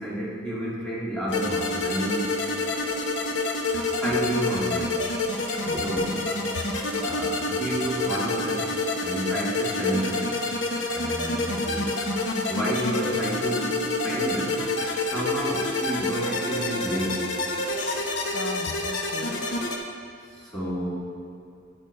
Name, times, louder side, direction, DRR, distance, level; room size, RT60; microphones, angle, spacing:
voice 1, 0.0-2.4 4.0-5.0 5.7-6.3 7.0-8.7 9.0-10.3 10.9-12.0 12.5-14.6 15.1-17.3 20.4-20.9, right 1 dB, 5° left, -7 dB, 1.8 m, -30 dB
sound 1, 1.3-19.8, left 2 dB, 65° left, 0.9 m, -28 dB
voice 2, 5.6-6.2 17.7-18.0 18.3-19.5, left 3 dB, 80° left, 7 dB, 0.5 m, -37 dB
9.7 x 6.2 x 4.6 m, 2.4 s
head